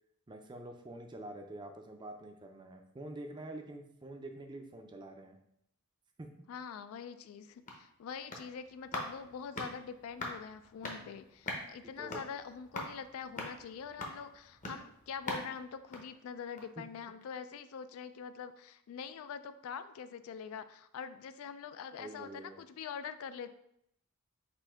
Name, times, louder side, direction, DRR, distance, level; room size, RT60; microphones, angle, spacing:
voice 1, 0.3-5.4 6.2-6.5 11.0-11.1 11.8-12.2 16.8-16.9 22.0-22.6, right 1 dB, 20° right, 5 dB, 0.4 m, -47 dB
voice 2, 6.5-23.5, left 6 dB, 70° left, 12 dB, 0.3 m, -44 dB
sound 1, 7.3-16.9 17.2-17.3, left 2 dB, 35° left, 0.7 m, -44 dB
4.2 x 2.6 x 4.4 m, 0.74 s
head